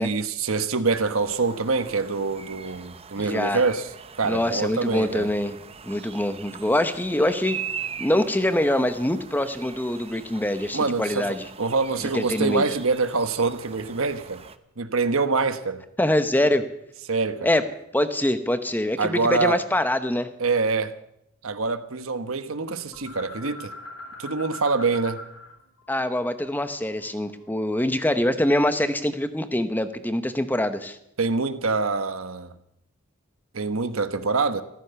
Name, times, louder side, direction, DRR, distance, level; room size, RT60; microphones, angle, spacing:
voice 1, 0.0-3.9 4.2-5.3 10.7-14.4 14.8-15.8 17.1-17.5 19.0-19.6 20.4-20.9 21.4-23.7 24.2-25.2 31.2-32.5 33.5-34.6, right 4 dB, 80° right, 1.2 m, -25 dB
sound 1, 0.9-14.6, right 7 dB, 30° right, 0.7 m, -41 dB
voice 2, 3.2-3.6 4.2-5.6 5.9-7.6 8.0-11.5 12.1-12.6 16.0-16.6 17.4-17.6 17.9-20.3 25.9-31.0, left 1 dB, 10° left, 0.9 m, -24 dB
sound 2, 22.9-25.5 25.8-28.1, left 2 dB, 80° left, 3.5 m, -42 dB
14.5 x 14.5 x 6.9 m
head